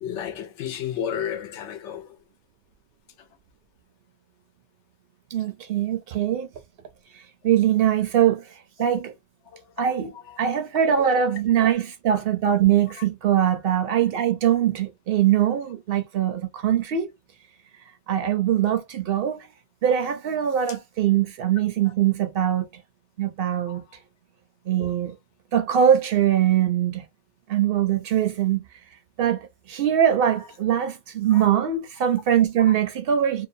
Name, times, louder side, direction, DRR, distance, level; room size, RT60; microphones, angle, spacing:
voice 1, 0.0-2.2 9.5-9.6 10.3-10.4 13.0-13.1 21.8-21.9 23.7-23.8 24.8-25.0 31.3-31.5 32.7-32.8, left 9 dB, 80° left, 0.9 m, -33 dB
voice 2, 5.3-6.5 7.4-9.1 9.8-17.1 18.1-19.5 19.8-22.7 23.2-23.8 24.7-25.2 25.5-27.1 27.5-28.6 29.2-33.5, right 10 dB, 65° right, 0.7 m, -22 dB
2.6 x 2.1 x 2.5 m
omnidirectional pair, 1.2 m